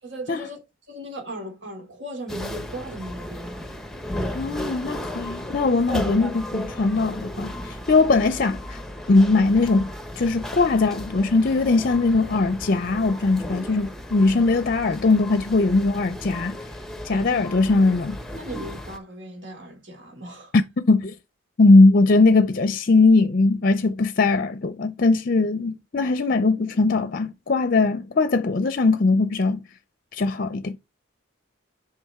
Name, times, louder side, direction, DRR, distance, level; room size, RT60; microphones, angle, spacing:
voice 1, 0.0-0.6 0.9-3.6 18.3-20.5, right 1 dB, 60° right, 2.7 m, -37 dB
sound 1, 2.3-19.0, left 1 dB, ahead, 0.9 m, -35 dB
voice 2, 4.3-8.8 9.1-16.6 17.0-18.2 20.5-21.1 21.6-29.6 30.1-30.8, left 3 dB, 45° left, 0.5 m, -20 dB
8.5 x 5.0 x 3.6 m
head